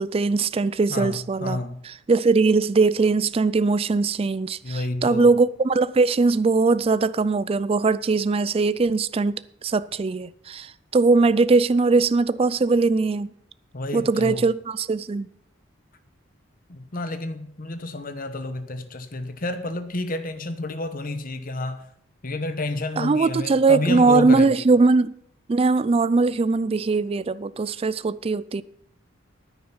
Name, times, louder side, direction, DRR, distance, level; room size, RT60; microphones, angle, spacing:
voice 1, 0.0-1.6 2.1-13.3 13.9-15.3 23.0-25.1 25.5-28.6, right 3 dB, 30° right, 0.3 m, -20 dB
voice 2, 0.9-1.8 4.6-5.3 13.7-14.4 16.7-21.9 22.2-24.7, left 2 dB, 45° left, 1.0 m, -30 dB
10.5 x 9.4 x 5.7 m
head